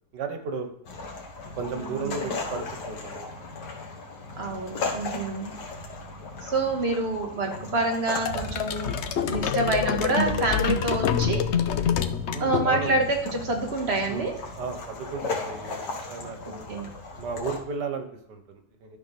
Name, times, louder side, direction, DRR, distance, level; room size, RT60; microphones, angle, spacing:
voice 1, 0.1-0.7 1.5-3.3 4.8-4.9 5.6-5.8 12.3-13.0 14.1-16.6 17.1-19.0, right 5 dB, 85° right, 7 dB, 1.8 m, -35 dB
sound 1, 0.9-17.6, left 3 dB, 85° left, 2.1 m, -36 dB
voice 2, 1.8-2.2 4.4-5.5 6.4-9.0 9.3-11.5 12.4-14.3 16.7-16.9, right 2 dB, 40° right, 2 dB, 1.9 m, -27 dB
sound 2, 8.3-13.1, left 7 dB, 60° left, 0.8 m, -26 dB
11.5 x 4.3 x 5.9 m, 0.75 s
omnidirectional pair, 1.8 m